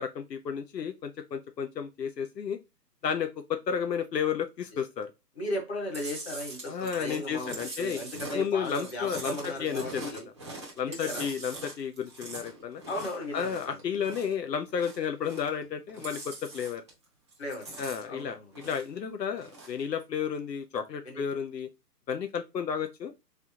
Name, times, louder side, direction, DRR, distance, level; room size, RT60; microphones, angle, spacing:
voice 1, 0.0-2.6 3.0-5.1 6.7-8.0 8.3-10.0 10.8-12.8 13.3-16.8 17.8-21.7 22.1-23.1, left 7 dB, 85° left, 0.7 m, -32 dB
voice 2, 5.3-10.3 10.9-11.2 12.9-13.8 17.4-17.8 18.1-18.5 21.0-21.2, left 1 dB, 40° left, 1.7 m, -36 dB
Chewing mastication, 5.9-14.4 14.7-15.6 15.9-17.0 17.3-19.0 19.3-19.8, right 2 dB, 15° right, 0.6 m, -43 dB
3.6 x 3.4 x 2.8 m
hypercardioid pair, 155°, 49 cm